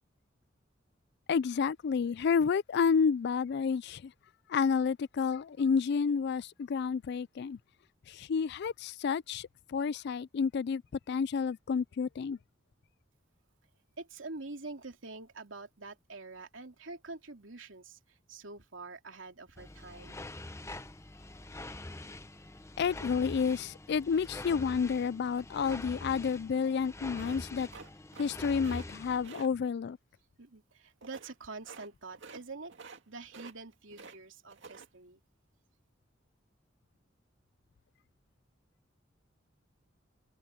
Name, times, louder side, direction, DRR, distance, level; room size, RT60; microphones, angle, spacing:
voice 1, 1.3-4.1 4.5-7.6 8.1-10.8 11.1-12.4 22.8-27.7 28.2-30.0, left 6 dB, 60° left, 0.4 m, -30 dB
voice 2, 14.0-20.2 30.4-35.2, right 3 dB, 85° right, 2.8 m, -46 dB
sound 1, 19.6-29.3, left 2 dB, 15° left, 0.8 m, -45 dB
sound 2, 27.1-28.3 28.6-28.9 29.2-29.5 31.0-31.3 31.6-31.9 32.1-32.4 32.7-33.0 33.3-34.2 34.5-34.9, right 4 dB, 65° right, 2.2 m, -49 dB
head